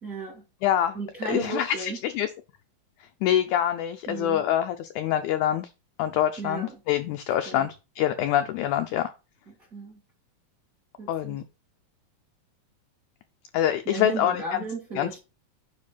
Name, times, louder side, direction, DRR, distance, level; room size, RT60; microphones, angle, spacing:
voice 1, 0.0-0.4 0.9-2.0 4.1-4.4 6.4-6.8 7.5-7.7 9.7-10.0 11.0-11.4 13.9-15.2, right 3 dB, 30° right, 1.8 m, -34 dB
voice 2, 0.6-1.0 1.3-2.3 3.2-5.7 6.0-9.1 11.1-11.4 13.5-14.4 15.0-15.2, left 11 dB, 80° left, 1.8 m, -25 dB
9.9 x 3.4 x 5.6 m
omnidirectional pair, 4.1 m